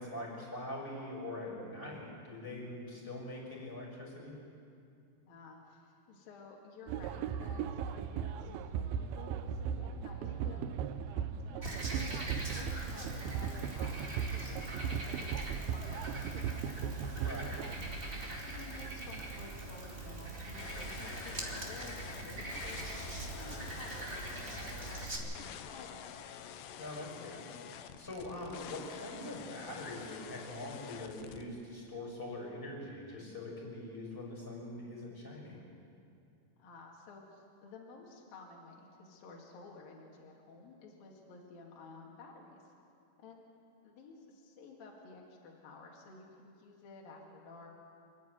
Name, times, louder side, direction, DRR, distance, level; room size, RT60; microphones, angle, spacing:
voice 1, 0.0-4.4 17.0-17.7 26.8-27.5 28.0-35.7, left 1 dB, 5° left, -2 dB, 5.4 m, -43 dB
voice 2, 5.2-10.7 11.1-16.8 17.4-17.6 18.4-26.2 36.6-42.7 43.2-43.4 43.8-47.7, left 3 dB, 60° left, -1 dB, 3.8 m, -53 dB
sound 1, 6.9-17.7, right 8 dB, 75° right, 2.4 m, -38 dB
Frog, 11.6-25.2, right 2 dB, 25° right, 1.4 m, -42 dB
sound 2, 20.6-31.4, left 9 dB, 80° left, 2.9 m, -48 dB
27.5 x 10.5 x 9.4 m, 2.5 s
omnidirectional pair, 4.9 m